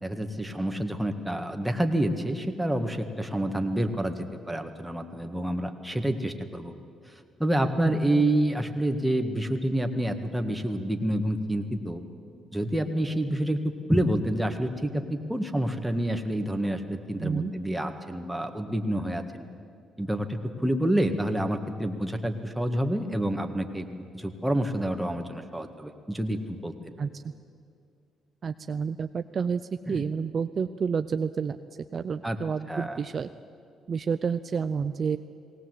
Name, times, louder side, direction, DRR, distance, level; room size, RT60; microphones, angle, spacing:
voice 1, 0.0-6.7 7.4-12.0 12.5-13.6 13.9-19.4 20.0-23.9 24.1-26.8 29.9-30.0 32.2-32.4 32.7-33.0, right 1 dB, 5° right, 5 dB, 1.9 m, -28 dB
voice 2, 7.8-8.2 17.2-17.5 27.0-27.2 28.4-29.6 29.9-31.6 31.9-33.3 33.9-35.2, right 6 dB, 50° right, 10 dB, 0.6 m, -29 dB
19.0 x 18.0 x 8.0 m, 2.4 s
supercardioid pair, 60°, 0 cm